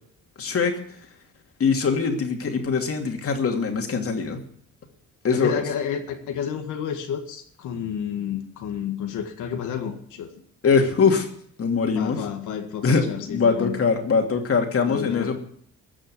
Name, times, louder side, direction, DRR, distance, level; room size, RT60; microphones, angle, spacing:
voice 1, 0.4-0.7 1.6-4.4 5.2-5.6 10.6-11.3 11.6-12.2 12.8-15.4, left 5 dB, 50° left, 4 dB, 2.7 m, -22 dB
voice 2, 5.3-10.3 12.0-13.8 14.8-15.4, left 8 dB, 85° left, 5 dB, 1.9 m, -30 dB
15.0 x 6.4 x 9.5 m, 0.64 s
cardioid pair, 90°, 30 cm